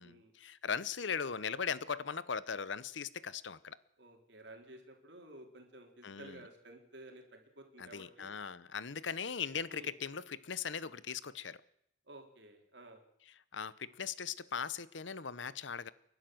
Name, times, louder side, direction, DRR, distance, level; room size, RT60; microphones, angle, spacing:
voice 1, 0.0-3.8 6.0-6.4 7.8-11.6 13.5-15.9, left 6 dB, 75° left, 0.9 m, -39 dB
voice 2, 4.0-8.3 9.7-9.9 12.1-13.0, right 1 dB, 65° right, 3.9 m, -53 dB
30.0 x 12.0 x 7.8 m
head